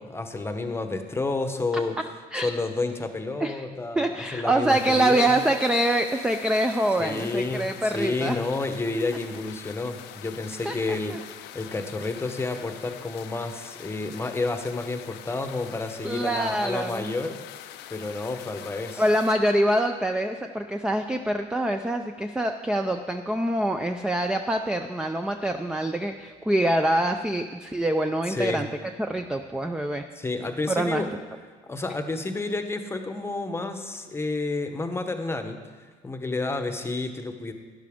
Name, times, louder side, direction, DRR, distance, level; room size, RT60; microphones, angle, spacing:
voice 1, 0.0-2.0 2.3-5.3 7.0-17.4 17.9-19.0 28.3-28.6 30.2-31.1 31.7-37.5, left 3 dB, 15° left, 7 dB, 0.9 m, -30 dB
voice 2, 4.0-8.4 10.6-11.2 16.0-17.1 19.0-30.1 30.7-31.0, right 1 dB, 5° right, 6 dB, 0.4 m, -25 dB
sound 1, 4.7-19.4, left 12 dB, 85° left, 0.5 m, -44 dB
12.0 x 10.5 x 3.6 m, 1.4 s
cardioid pair, 110°, 17 cm